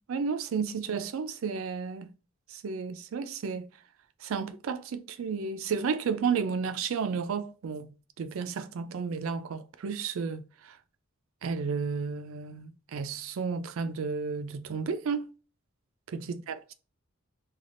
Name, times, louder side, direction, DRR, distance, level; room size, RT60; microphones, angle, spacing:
voice 1, 0.1-2.1 2.5-3.7 4.2-10.8 11.4-15.3 16.1-16.7, right 5 dB, 80° right, 0.4 m, -32 dB
3.3 x 2.3 x 2.4 m
head